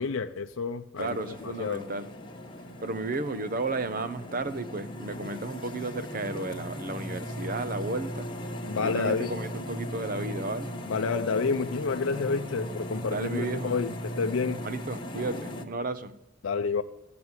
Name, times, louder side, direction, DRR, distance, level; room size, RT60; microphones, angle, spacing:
voice 1, 0.0-1.9 8.7-9.4 10.9-14.6 16.4-16.8, left 5 dB, 80° left, 0.5 m, -29 dB
sound 1, 1.0-15.6, equal, 25° left, 1.3 m, -38 dB
voice 2, 1.0-2.1 2.8-8.3 8.8-10.7 13.1-13.7 14.6-16.1, right 2 dB, 45° right, 0.7 m, -33 dB
15.5 x 6.0 x 9.6 m
head